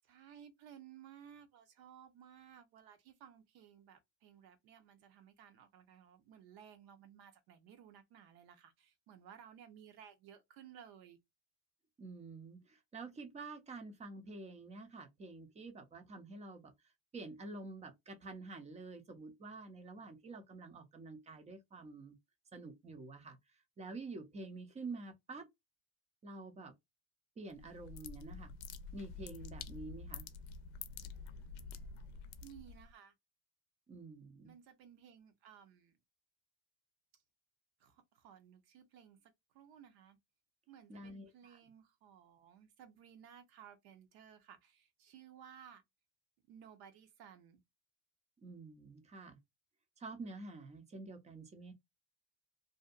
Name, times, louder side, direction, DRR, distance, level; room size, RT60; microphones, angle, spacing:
voice 1, 0.0-11.2 32.4-33.1 34.4-36.0 37.8-40.2 40.7-45.8 46.5-47.6, right 9 dB, 60° right, 0.8 m, -58 dB
voice 2, 12.0-16.7 17.1-22.2 22.5-23.4 23.8-25.5 26.2-26.7 27.4-28.5 28.9-30.3 33.9-34.5 40.9-41.6 48.4-49.4 50.0-51.7, right 3 dB, 15° right, 0.4 m, -48 dB
sound 1, 27.5-32.9, left 5 dB, 80° left, 0.6 m, -48 dB
2.6 x 2.1 x 2.4 m
cardioid pair, 140°, 41 cm